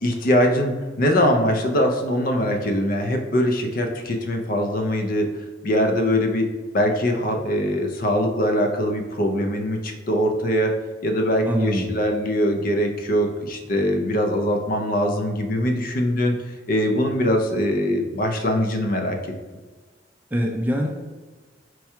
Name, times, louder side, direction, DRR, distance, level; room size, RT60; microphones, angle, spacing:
voice 1, 0.0-5.3 5.6-6.5 6.7-10.7 11.0-16.4 16.7-19.2, equal, 45° left, 4 dB, 0.5 m, -22 dB
voice 2, 11.4-11.9 20.3-20.9, equal, 10° right, 1 dB, 0.4 m, -23 dB
4.5 x 2.3 x 4.3 m, 1.3 s
head